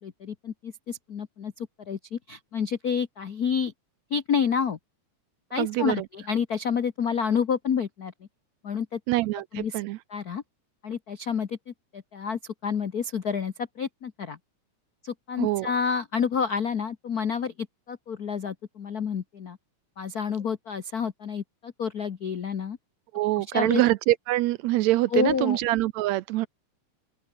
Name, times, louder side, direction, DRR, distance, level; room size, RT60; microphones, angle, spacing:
voice 1, 0.0-3.7 4.1-4.8 5.5-8.1 8.6-9.0 9.5-9.8 10.1-10.4 10.8-14.4 15.0-19.6 20.0-22.8 23.4-23.8 25.1-25.6, left 6 dB, 70° left, 0.8 m, -29 dB
voice 2, 5.6-6.0 9.1-10.0 15.4-15.7 23.1-26.5, right 16 dB, 75° right, 1.8 m, -24 dB
open air
omnidirectional pair, 3.5 m